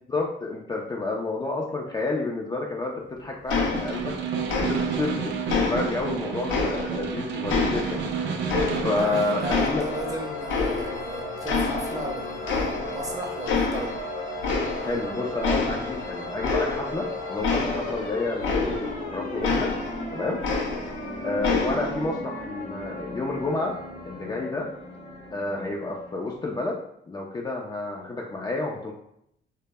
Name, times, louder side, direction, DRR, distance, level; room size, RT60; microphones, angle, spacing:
voice 1, 0.1-4.1 4.6-8.0 8.8-9.9 14.8-19.7 20.1-20.4 21.2-23.7 24.0-24.7 25.3-26.8 27.1-28.9, left 2 dB, 20° left, -2 dB, 0.4 m, -30 dB
sound 1, 3.5-4.2 4.5-5.1 5.5-7.1 7.5-9.1 9.5-11.1 11.5-12.1 12.5-13.1 13.5-14.0 14.4-15.1 15.4-19.0 19.4-21.1 21.4-22.0, left 4 dB, 75° left, 0.5 m, -28 dB
Snare drum, 3.6-9.7, right 6 dB, 65° right, 0.4 m, -31 dB
sound 2, 8.0-26.7, left 1 dB, 40° left, 0.8 m, -36 dB
voice 2, 8.8-13.9 14.8-14.9, right 1 dB, 15° right, 0 dB, 0.6 m, -36 dB
2.1 x 2.0 x 3.4 m, 0.72 s
cardioid pair, 90°, 20 cm